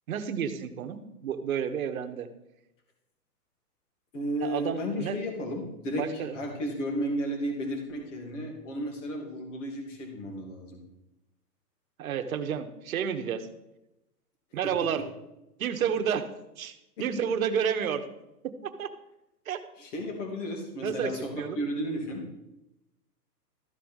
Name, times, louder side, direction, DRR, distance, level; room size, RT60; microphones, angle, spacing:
voice 1, 0.1-2.3 4.4-5.2 5.9-6.4 12.0-13.5 14.5-15.0 15.6-16.3 16.6-18.0 18.6-18.9 19.5-19.6 20.8-21.6, right 8 dB, 60° right, 8 dB, 1.1 m, -30 dB
voice 2, 4.1-10.8 19.8-22.2, equal, 50° left, 2 dB, 2.8 m, -33 dB
13.5 x 5.1 x 6.3 m, 0.90 s
hypercardioid pair, 160°, 48 cm